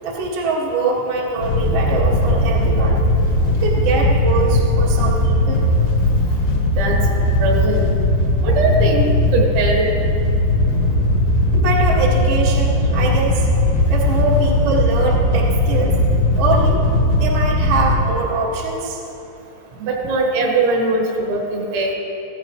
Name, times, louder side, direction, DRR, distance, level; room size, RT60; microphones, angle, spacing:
voice 1, 0.0-3.1 3.4-5.6 11.5-13.5 13.9-16.0 16.3-19.0, right 3 dB, 60° right, -4 dB, 1.3 m, -23 dB
Wind / Boat Water vehicle, 1.4-17.9, left 1 dB, 70° left, 2.2 m, -18 dB
voice 2, 7.4-7.9 8.4-9.8 19.8-21.9, right 2 dB, 75° right, 0 dB, 3.8 m, -20 dB
16.0 x 15.5 x 3.2 m, 2.8 s
omnidirectional pair, 5.5 m